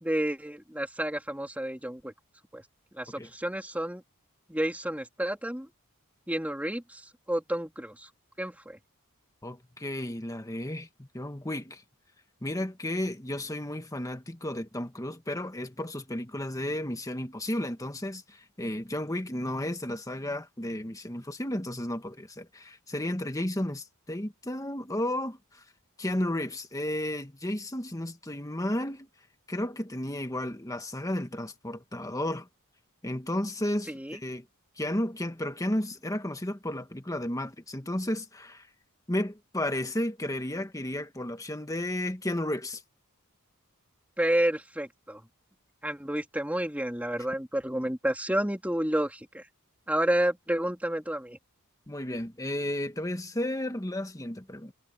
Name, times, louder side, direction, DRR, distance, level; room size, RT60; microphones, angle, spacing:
voice 1, 0.0-2.1 2.5-2.6 2.9-4.0 4.5-5.7 6.3-8.1 8.4-8.8 33.9-34.2 44.2-45.2 45.8-49.4 49.9-51.4, right 1 dB, 5° right, 3.0 m, -30 dB
voice 2, 9.4-11.8 12.4-25.4 26.0-29.1 29.5-32.5 33.0-34.4 34.8-38.7 39.1-42.8 51.9-54.7, left 1 dB, 15° left, 1.6 m, -33 dB
head